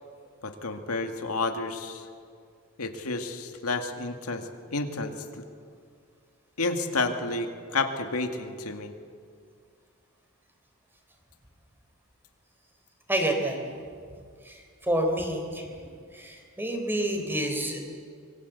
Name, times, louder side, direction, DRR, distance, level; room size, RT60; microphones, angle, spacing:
voice 1, 0.4-2.1 2.8-5.4 6.6-8.9, left 3 dB, 85° left, 5 dB, 2.1 m, -31 dB
voice 2, 13.1-13.6 14.5-15.8 16.1-17.8, right 1 dB, 10° right, 3 dB, 3.7 m, -28 dB
26.0 x 22.0 x 8.3 m, 2.2 s
head